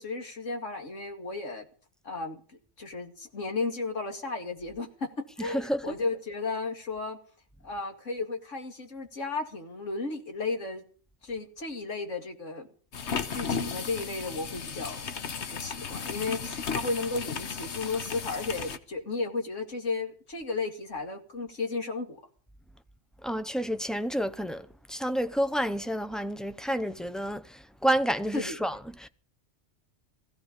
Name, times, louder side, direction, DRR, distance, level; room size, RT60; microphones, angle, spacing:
voice 1, 0.0-1.6 2.0-2.4 2.8-7.2 7.6-10.8 11.2-12.7 13.3-15.1 15.4-22.2 28.3-28.6, left 3 dB, 85° left, 2.7 m, -34 dB
voice 2, 5.4-6.0 23.2-29.1, equal, ahead, 0.3 m, -30 dB
sound 1, 12.9-18.8, left 6 dB, 65° left, 1.3 m, -35 dB
16.0 x 16.0 x 5.3 m
omnidirectional pair, 1.2 m